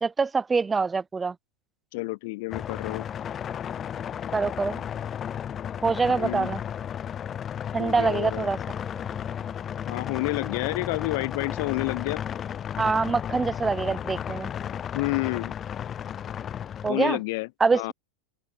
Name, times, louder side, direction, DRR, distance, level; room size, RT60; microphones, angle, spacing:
voice 1, 0.0-1.3 4.3-4.8 5.8-6.6 7.7-8.6 12.8-14.5 16.8-17.2 17.6-17.9, right 4 dB, 15° right, 1.1 m, -25 dB
voice 2, 1.9-3.1 6.1-6.5 7.8-8.5 9.9-12.2 14.9-15.5 16.9-17.9, left 24 dB, 50° left, 0.9 m, -29 dB
sound 1, 2.5-16.9, left 9 dB, 25° left, 0.8 m, -34 dB
sound 2, 8.7-14.8, left 2 dB, 5° left, 5.3 m, -53 dB
open air
figure-of-eight pair, 90°, 0 cm